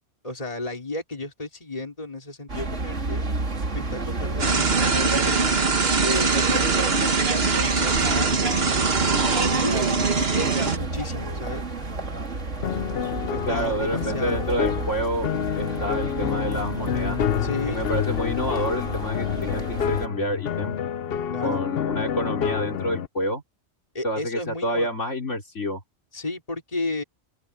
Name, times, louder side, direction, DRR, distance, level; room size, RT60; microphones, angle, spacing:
voice 1, 0.2-3.3 3.7-6.5 7.3-8.4 8.9-11.6 13.3-14.4 17.4-17.8 21.3-21.6 23.9-24.9 26.1-27.0, left 2 dB, 30° left, 3.5 m, -33 dB
sound 1, 2.5-20.1, right 3 dB, 85° right, 2.9 m, -31 dB
sound 2, 4.4-10.8, right 4 dB, 55° right, 1.8 m, -22 dB
sound 3, 12.6-23.1, left 9 dB, 60° left, 0.9 m, -28 dB
voice 2, 13.5-15.3 15.6-17.2 17.7-20.8 21.4-23.4 24.0-25.8, equal, 90° left, 4.6 m, -28 dB
open air
omnidirectional pair, 1.2 m